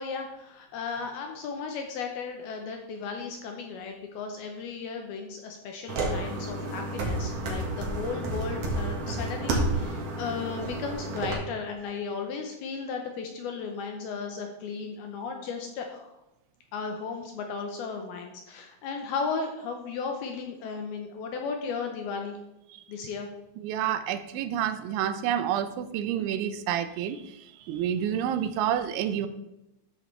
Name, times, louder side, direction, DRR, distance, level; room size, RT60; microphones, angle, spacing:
voice 1, 0.0-16.1 16.7-22.4 22.9-23.3, left 5 dB, 75° left, 3 dB, 2.3 m, -35 dB
sound 1, 5.9-11.3, right 2 dB, 55° right, 2.6 m, -30 dB
voice 2, 23.6-27.2 27.7-29.3, right 10 dB, 90° right, 11 dB, 3.1 m, -28 dB
13.0 x 7.6 x 3.3 m, 0.91 s
omnidirectional pair, 5.2 m